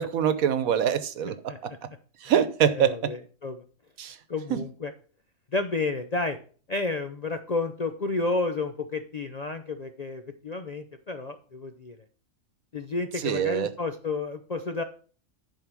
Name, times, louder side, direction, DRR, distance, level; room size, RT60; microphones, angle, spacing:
voice 1, 0.0-1.3 2.2-3.0 4.0-4.1 4.5-4.6 13.2-13.7, right 9 dB, 85° right, 12 dB, 1.3 m, -24 dB
voice 2, 1.2-1.6 2.7-3.6 4.3-4.9 5.5-6.4 6.7-12.0 12.7-14.8, left 3 dB, 50° left, 7 dB, 0.5 m, -31 dB
10.5 x 4.7 x 6.1 m, 0.42 s
omnidirectional pair, 1.4 m